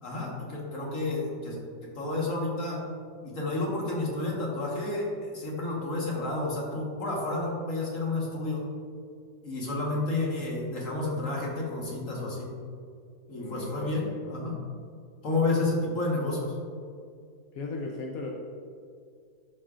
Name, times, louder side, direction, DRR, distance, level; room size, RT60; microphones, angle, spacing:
voice 1, 0.0-1.6 1.9-2.8 3.2-8.6 9.4-12.5 13.3-14.6 15.2-16.5, left 2 dB, 45° left, -3 dB, 1.6 m, -30 dB
voice 2, 13.4-14.3 17.5-18.3, left 3 dB, 65° left, -1 dB, 0.9 m, -38 dB
11.5 x 4.8 x 2.5 m, 2.3 s
omnidirectional pair, 2.1 m